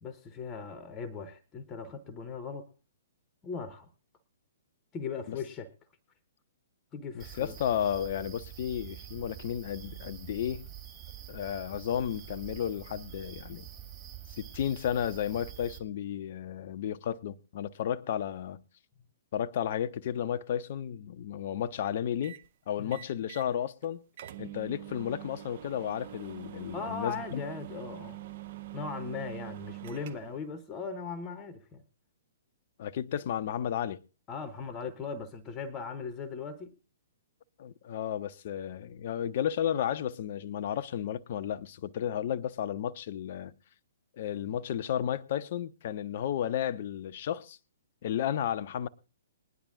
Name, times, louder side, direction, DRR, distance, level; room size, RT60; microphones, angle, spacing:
voice 1, 0.0-2.7 3.4-3.9 4.9-5.7 6.9-7.6 22.8-23.0 26.7-28.2 28.7-31.8 34.3-36.8, left 5 dB, 20° left, 0.9 m, -38 dB
voice 2, 7.1-10.7 11.3-13.7 14.4-18.6 19.3-22.4 22.7-24.0 24.4-27.4 32.8-34.0 37.6-43.6 44.2-47.6 48.0-48.9, left 10 dB, 45° left, 0.6 m, -33 dB
sound 1, 7.2-15.8, right 11 dB, 20° right, 2.3 m, -46 dB
sound 2, 22.2-22.5 22.9-23.5 23.8-23.9 24.2-30.5, right 14 dB, 40° right, 0.6 m, -44 dB
21.0 x 10.5 x 2.5 m
figure-of-eight pair, 120°, 0 cm